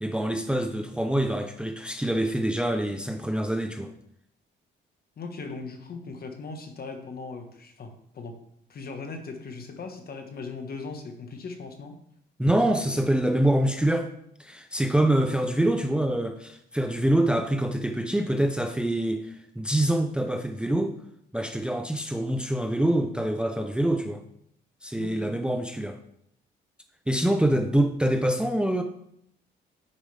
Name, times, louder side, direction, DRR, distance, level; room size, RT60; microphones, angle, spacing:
voice 1, 0.0-3.9 12.4-14.1 14.4-20.9 21.3-24.2 24.8-26.0 27.1-28.8, right 1 dB, 5° right, 6 dB, 0.6 m, -25 dB
voice 2, 5.2-8.4 8.7-12.0 25.0-25.4 27.2-27.3, left 4 dB, 50° left, 5 dB, 1.4 m, -39 dB
9.9 x 5.1 x 3.4 m, 0.71 s
cardioid pair, 90°, 20 cm